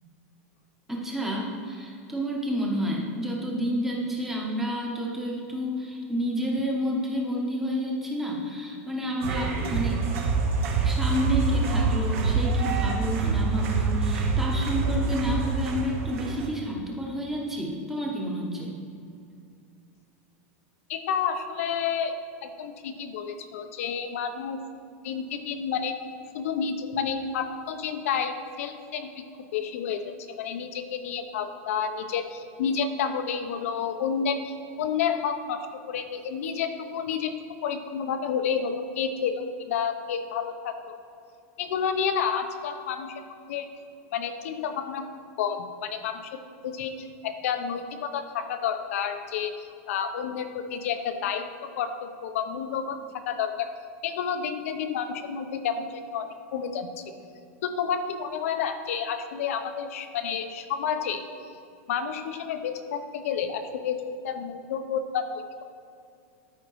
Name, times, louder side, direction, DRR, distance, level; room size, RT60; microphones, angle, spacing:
voice 1, 0.9-10.0 10.8-18.7, equal, 5° right, -2 dB, 0.9 m, -30 dB
sound 1, 9.2-16.5, right 4 dB, 70° right, 1.3 m, -26 dB
voice 2, 20.9-22.1 22.4-24.6 25.0-25.9 26.3-29.1 29.5-37.3 37.6-40.9 41.6-43.2 43.5-43.7 44.1-45.1 45.4-49.5 49.9-53.7 54.0-57.0 57.6-61.2 61.9-65.6, left 7 dB, 75° left, 8 dB, 0.7 m, -30 dB
12.5 x 5.1 x 3.1 m, 2.4 s
supercardioid pair, 170°, 8 cm